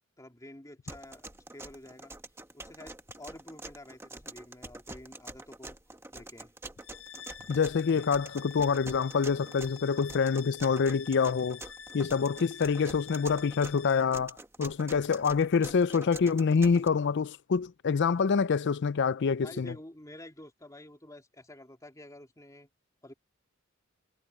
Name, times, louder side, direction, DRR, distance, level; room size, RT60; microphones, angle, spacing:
voice 1, 0.2-2.1 2.5-5.8 6.1-6.5 19.4-22.7 23.0-23.1, left 1 dB, 15° left, 2.7 m, -49 dB
sound 1, 0.9-16.9, right 2 dB, 10° right, 1.3 m, -46 dB
sound 2, 6.8-14.0, left 9 dB, 85° left, 1.5 m, -48 dB
voice 2, 7.5-11.6 11.9-19.7, left 5 dB, 55° left, 0.4 m, -26 dB
head